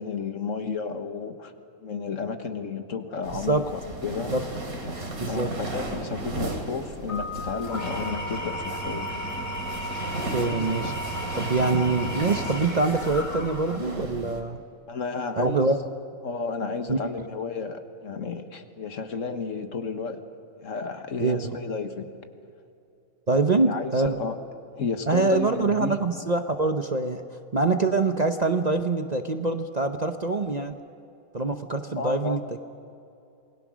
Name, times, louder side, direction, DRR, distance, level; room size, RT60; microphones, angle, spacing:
voice 1, 0.0-1.5 1.8-4.3 5.2-9.2 14.9-15.7 16.2-20.2 20.6-22.1 23.6-24.4 24.8-26.0 31.9-32.4, left 5 dB, 60° left, 7 dB, 1.7 m, -32 dB
sound 1, 3.2-14.4, right 2 dB, 85° right, 3.2 m, -35 dB
voice 2, 3.3-3.6 4.3-4.4 5.2-5.5 10.3-10.9 11.3-14.6 15.4-15.8 16.9-17.0 21.2-21.5 23.3-24.2 25.1-27.2 27.5-30.8 31.3-32.6, right 3 dB, 35° right, 6 dB, 0.8 m, -24 dB
Keyboard (musical), 7.1-8.9, left 5 dB, 50° right, 3.4 m, -40 dB
Engine / Tools, 7.6-14.0, equal, 30° left, 2.3 m, -34 dB
28.0 x 20.5 x 6.3 m, 2.7 s
omnidirectional pair, 1.5 m